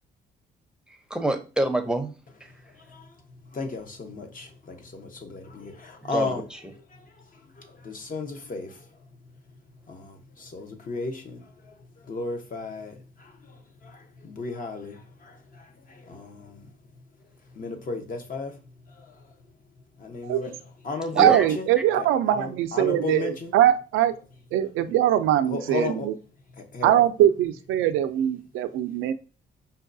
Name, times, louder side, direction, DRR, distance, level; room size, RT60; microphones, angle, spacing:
voice 1, 1.1-2.2 6.0-6.7 21.1-21.5, right 1 dB, 5° right, 0.6 m, -26 dB
voice 2, 3.5-6.4 7.6-8.7 9.9-11.4 12.1-12.9 14.2-14.9 16.1-16.6 17.6-18.5 20.0-20.5 20.8-21.7 22.0-23.5 25.5-26.1 26.7-27.0, left 3 dB, 45° left, 0.8 m, -33 dB
voice 3, 21.1-24.1 24.5-26.1 26.8-29.1, right 12 dB, 90° right, 0.4 m, -22 dB
5.3 x 2.3 x 2.6 m
cardioid pair, 90°, 20 cm